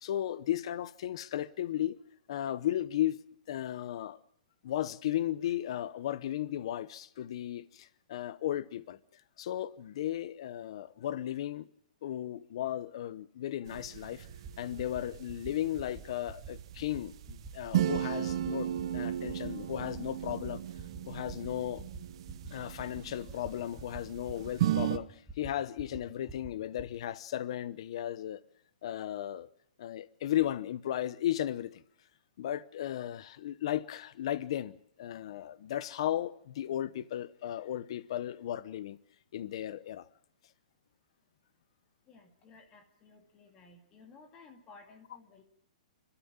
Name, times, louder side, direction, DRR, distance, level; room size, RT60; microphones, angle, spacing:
voice 1, 0.0-2.0 2.3-3.2 3.5-4.2 4.6-11.7 12.0-14.3 14.6-20.6 21.1-21.8 22.5-28.4 28.8-29.5 29.8-31.8 32.4-39.0 39.3-40.1, left 12 dB, 45° left, 0.9 m, -35 dB
sound 1, 13.7-25.0, right 11 dB, 40° right, 1.0 m, -36 dB
sound 2, 14.3-14.5 14.8-15.0 15.3-15.5 15.8-16.0 16.3-16.5 16.8-17.0 17.3-17.5 17.8-18.0 18.3-18.5 18.8-19.0 19.3-19.5 19.8-20.0 20.3-20.5 20.8-21.0 21.3-21.5 21.8-22.0 22.3-22.5 22.8-23.0 23.3-23.5 23.8-24.0 24.3-24.5 24.8-25.0 25.3-25.5 25.8-26.0 26.3-26.5 26.8-27.0, right 3 dB, 5° right, 2.3 m, -45 dB
voice 2, 42.1-45.4, left 4 dB, 15° left, 2.3 m, -56 dB
27.5 x 13.0 x 8.8 m
hypercardioid pair, 175°, 4 cm